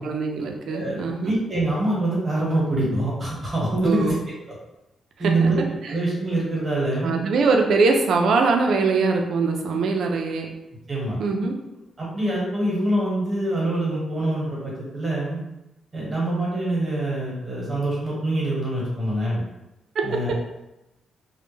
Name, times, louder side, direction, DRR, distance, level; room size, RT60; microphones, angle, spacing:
voice 1, 0.0-1.4 3.8-4.2 5.2-5.5 5.8-5.9 7.0-10.5 11.2-11.5, right 4 dB, 65° right, 2 dB, 0.4 m, -22 dB
voice 2, 0.7-4.1 5.2-5.6 5.9-7.2 10.9-11.2 12.0-15.4 15.9-19.4 20.0-20.3, right 1 dB, 25° right, -5 dB, 1.0 m, -25 dB
2.1 x 2.1 x 3.1 m, 0.94 s
cardioid pair, 115°, 0 cm